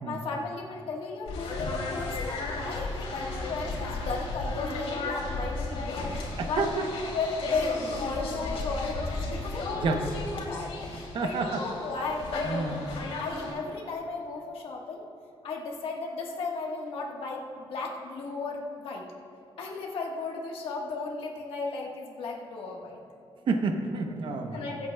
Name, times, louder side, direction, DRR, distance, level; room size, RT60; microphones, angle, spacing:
voice 1, 0.0-6.1 6.5-10.1 10.5-12.4 12.7-12.9 13.2-15.0 15.4-19.1 19.6-23.0 24.5-24.9, left 3 dB, 65° left, 0 dB, 1.5 m, -35 dB
sound 1, 1.3-13.5, left 2 dB, 80° left, 2.8 m, -34 dB
voice 2, 6.4-6.8 9.7-10.0 11.1-11.6 12.4-12.8 23.5-24.6, right 4 dB, 55° right, 5 dB, 0.9 m, -29 dB
23.0 x 8.3 x 2.3 m, 2.6 s
cardioid pair, 155°, 10 cm